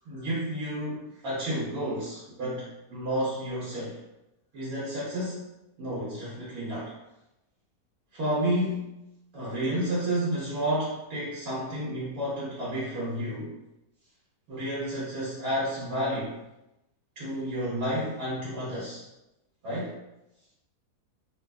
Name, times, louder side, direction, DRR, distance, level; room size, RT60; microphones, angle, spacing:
voice 1, 0.1-4.0 4.5-5.5 5.8-6.9 8.1-9.0 9.3-13.5 14.5-16.4 17.2-19.0 19.6-19.9, equal, 65° right, -7 dB, 1.2 m, -31 dB
4.1 x 2.4 x 2.2 m, 0.94 s
omnidirectional pair, 1.7 m